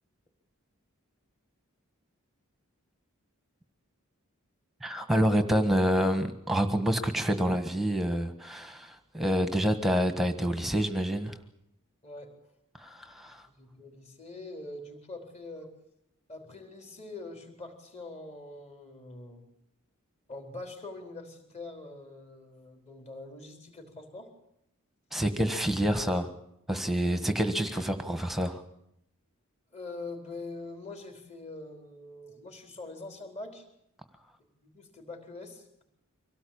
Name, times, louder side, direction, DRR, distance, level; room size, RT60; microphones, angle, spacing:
voice 1, 4.8-11.4 12.8-13.5 25.1-26.3 26.7-28.6, equal, ahead, 8 dB, 1.4 m, -27 dB
voice 2, 12.0-12.4 13.4-15.7 16.3-19.4 20.3-24.3 27.1-27.2 29.7-33.7 34.6-35.8, left 2 dB, 30° left, 4 dB, 4.1 m, -44 dB
25.0 x 18.0 x 8.8 m, 0.78 s
head